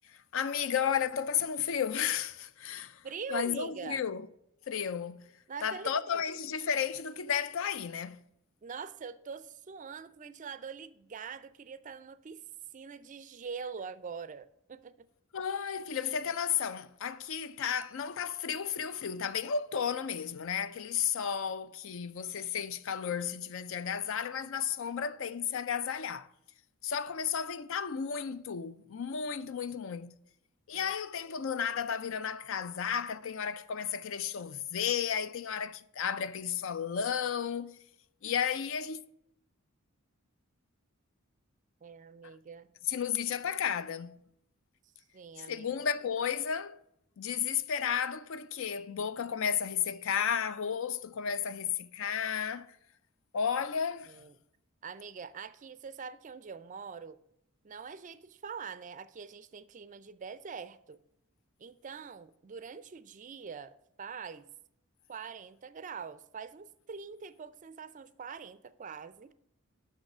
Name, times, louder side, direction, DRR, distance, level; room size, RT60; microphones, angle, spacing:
voice 1, 0.1-3.0 3.3-4.2 4.7-5.3 5.6-8.2 15.3-26.3 26.8-30.1 30.7-37.8 38.2-39.0 42.2-42.3 42.9-44.2 45.5-46.8 47.2-52.7 53.3-54.1, left 7 dB, 60° left, 0.4 m, -33 dB
voice 2, 3.0-4.0 5.5-6.2 8.6-12.4 12.7-15.1 30.7-30.9 41.8-42.7 45.1-45.7 54.1-54.4 54.8-57.2 57.6-61.0 61.6-64.5 65.1-69.3, right 6 dB, 35° right, 0.4 m, -44 dB
6.4 x 6.1 x 6.0 m
head